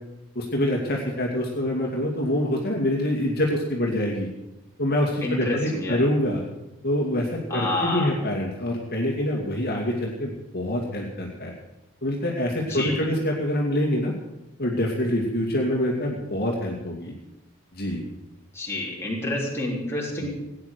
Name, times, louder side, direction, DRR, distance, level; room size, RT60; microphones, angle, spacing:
voice 1, 0.4-4.3 4.8-6.4 6.8-11.5 12.0-14.1 14.6-17.1 17.7-18.1, left 1 dB, 45° left, -1 dB, 2.3 m, -25 dB
voice 2, 5.2-6.0 7.5-8.1 12.7-13.1 18.5-20.3, left 1 dB, 10° left, -4 dB, 3.5 m, -28 dB
17.0 x 9.9 x 6.8 m, 0.94 s
head